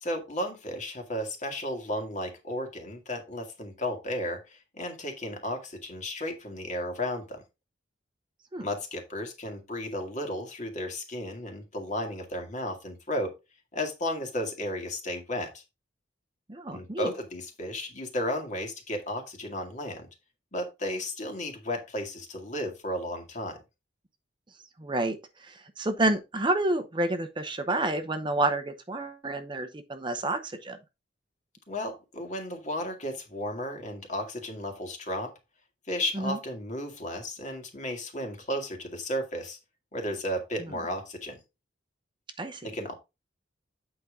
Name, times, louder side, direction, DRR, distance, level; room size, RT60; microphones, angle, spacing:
voice 1, 0.0-7.4 8.6-13.3 13.7-15.6 16.7-20.1 20.5-23.6 31.7-35.3 35.9-39.6 39.9-41.4 42.6-42.9, left 1 dB, 40° left, 2.1 m, -34 dB
voice 2, 16.5-17.1 24.8-30.8 36.1-36.4 40.6-40.8 42.4-42.7, right 2 dB, 25° right, 0.8 m, -29 dB
8.4 x 5.2 x 3.6 m
head